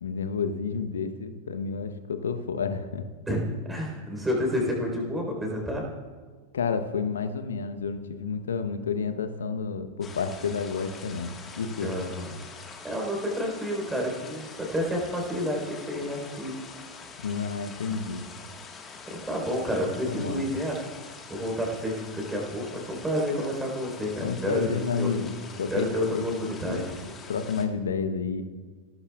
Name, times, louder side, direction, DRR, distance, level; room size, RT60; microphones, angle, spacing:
voice 1, 0.0-3.1 6.5-12.0 17.2-18.3 20.0-20.4 24.2-28.4, left 5 dB, 65° left, 10 dB, 0.9 m, -30 dB
voice 2, 3.3-5.9 11.8-12.3 12.8-16.5 19.1-20.7 21.3-25.1 25.7-26.8, equal, 10° right, -1 dB, 4.1 m, -30 dB
sound 1, 10.0-27.7, left 5 dB, 20° left, 1.6 m, -45 dB
17.5 x 13.0 x 2.4 m, 1.5 s
figure-of-eight pair, 90°, 0 cm